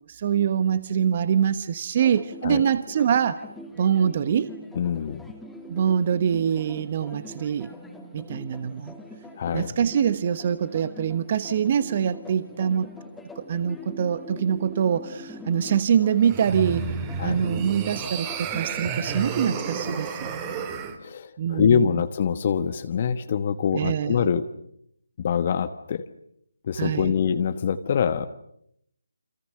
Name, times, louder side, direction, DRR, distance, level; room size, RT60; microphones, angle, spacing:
voice 1, 0.0-3.4 3.8-4.5 5.7-7.7 8.1-8.9 9.5-12.9 13.4-20.3 21.4-21.9 23.7-24.3 26.8-27.1, right 8 dB, 35° right, 13 dB, 1.1 m, -24 dB
sound 1, 2.0-19.9, left 1 dB, ahead, 2.8 m, -43 dB
voice 2, 4.7-5.3 9.4-9.7 17.2-17.4 21.0-24.4 25.2-26.0 26.6-28.3, left 7 dB, 35° left, 9 dB, 1.2 m, -24 dB
sound 2, 16.2-21.0, right 6 dB, 20° right, 3.0 m, -32 dB
29.0 x 27.0 x 6.7 m, 0.73 s
figure-of-eight pair, 150°, 0 cm